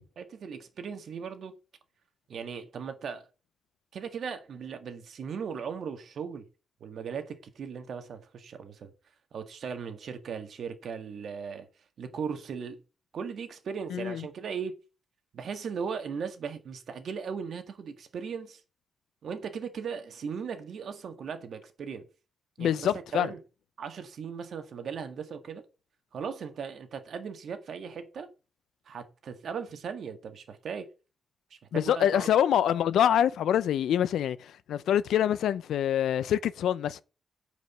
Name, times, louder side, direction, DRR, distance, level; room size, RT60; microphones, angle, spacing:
voice 1, 0.2-1.5 2.3-3.3 3.9-6.4 6.8-8.9 9.3-11.7 12.0-12.8 13.1-14.8 15.3-18.6 19.2-22.0 22.6-23.4 23.8-25.6 26.1-28.3 28.9-30.9 31.7-32.3, right 6 dB, 60° right, 1.9 m, -37 dB
voice 2, 13.9-14.2 22.6-23.3 31.7-37.0, left 10 dB, 90° left, 0.7 m, -25 dB
9.5 x 5.2 x 7.4 m
cardioid pair, 125°, 0 cm